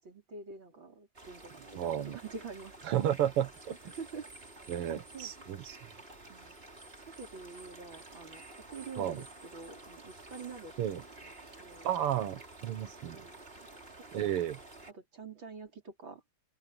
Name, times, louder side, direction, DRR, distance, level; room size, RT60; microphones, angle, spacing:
voice 1, 0.0-2.8 3.8-4.3 5.1-5.3 6.3-6.6 6.9-11.3 11.6-11.9 12.8-13.6 14.0-14.3 14.9-16.2, right 4 dB, 60° right, 5.4 m, -47 dB
sound 1, 1.1-14.9, right 2 dB, 25° right, 3.2 m, -51 dB
voice 2, 1.8-2.2 2.9-3.9 4.7-5.8 9.0-9.2 10.8-11.0 11.8-13.2 14.1-14.6, right 11 dB, 85° right, 2.1 m, -32 dB
open air
omnidirectional pair, 2.4 m